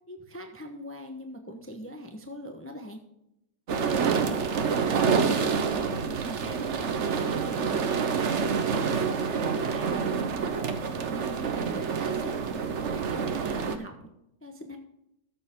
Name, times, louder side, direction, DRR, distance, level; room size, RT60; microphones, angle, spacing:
voice 1, 0.1-3.0 3.7-8.1 8.7-12.4 12.8-14.1 14.4-14.8, equal, 10° left, 4 dB, 0.9 m, -42 dB
sound 1, 3.7-13.8, right 6 dB, 55° right, 1.1 m, -27 dB
13.5 x 7.3 x 3.7 m, 0.82 s
omnidirectional pair, 1.7 m